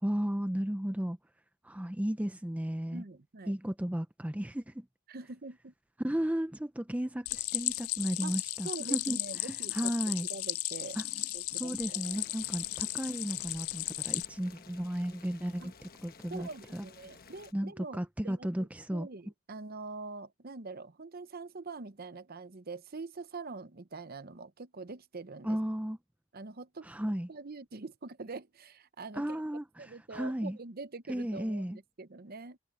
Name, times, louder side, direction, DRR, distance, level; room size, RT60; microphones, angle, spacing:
voice 1, 0.0-1.2 1.6-3.0 3.5-4.9 6.0-10.3 10.9-11.1 11.5-16.8 17.5-19.1 25.4-26.0 26.8-27.3 29.1-30.6 31.1-31.8, equal, 5° right, 0.5 m, -34 dB
voice 2, 2.9-3.5 5.1-5.7 8.2-8.3 8.6-9.9 10.3-11.0 11.3-12.3 15.6-15.7 16.3-25.6 26.3-26.9 27.3-29.4 29.8-32.6, right 3 dB, 45° right, 0.8 m, -44 dB
Stream, 7.3-14.3, left 19 dB, 80° left, 0.5 m, -35 dB
Boiling, 12.0-17.5, left 5 dB, 45° left, 1.3 m, -55 dB
head